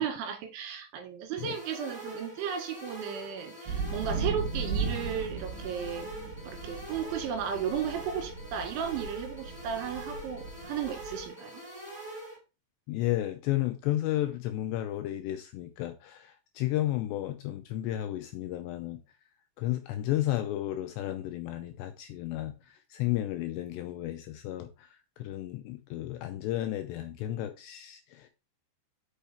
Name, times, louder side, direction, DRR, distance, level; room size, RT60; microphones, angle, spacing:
voice 1, 0.0-6.1 6.5-11.6, right 8 dB, 75° right, 4.1 m, -35 dB
sound 1, 1.4-12.4, right 1 dB, 5° left, 3.1 m, -44 dB
sound 2, 3.7-11.2, right 4 dB, 50° right, 2.8 m, -37 dB
voice 2, 12.9-19.0 19.6-24.9 25.2-28.3, left 14 dB, 80° left, 2.6 m, -33 dB
7.0 x 5.6 x 4.3 m
omnidirectional pair, 5.5 m